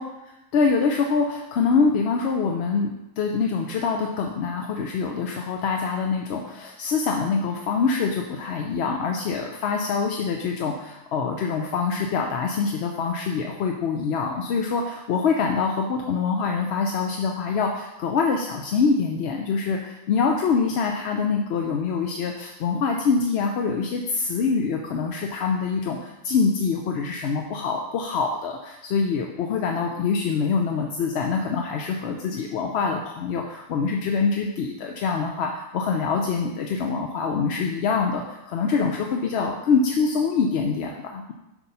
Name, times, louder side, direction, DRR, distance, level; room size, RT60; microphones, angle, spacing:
voice 1, 0.5-41.3, left 5 dB, 60° left, 2 dB, 0.7 m, -25 dB
8.0 x 3.0 x 5.4 m, 0.96 s
omnidirectional pair, 1.4 m